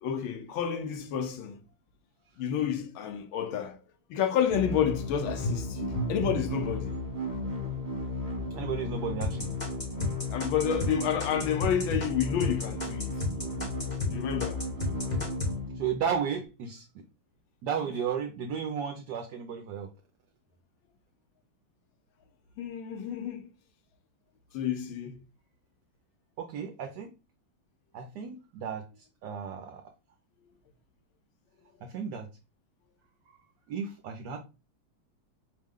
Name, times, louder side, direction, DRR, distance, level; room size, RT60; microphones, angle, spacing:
voice 1, 0.0-1.6 2.4-3.8 4.1-6.9 10.3-13.1 14.1-14.6 22.6-23.5 24.5-25.2, left 8 dB, 85° left, 1.5 m, -30 dB
sound 1, 4.5-16.4, left 2 dB, 20° right, 0.5 m, -35 dB
voice 2, 8.5-9.6 15.7-17.0 17.6-19.9 26.4-27.1 27.9-29.8 31.8-32.3 33.7-34.4, right 7 dB, 70° right, 1.0 m, -34 dB
sound 2, 9.2-14.1 14.4-15.5, left 2 dB, 40° left, 0.6 m, -32 dB
4.9 x 2.1 x 3.5 m
omnidirectional pair, 2.2 m